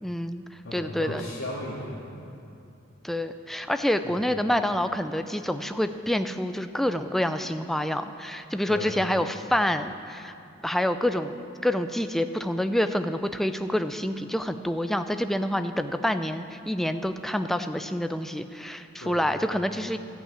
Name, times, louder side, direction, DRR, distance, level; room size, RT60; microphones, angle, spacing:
voice 1, 0.0-0.4 0.7-1.3 3.0-10.3 10.6-11.4 11.6-20.0, left 1 dB, ahead, 9 dB, 0.3 m, -27 dB
voice 2, 0.6-2.5 4.0-4.2 8.7-9.0 19.0-19.5, left 1 dB, 65° left, -9 dB, 2.1 m, -37 dB
14.0 x 5.7 x 8.4 m, 2.6 s
head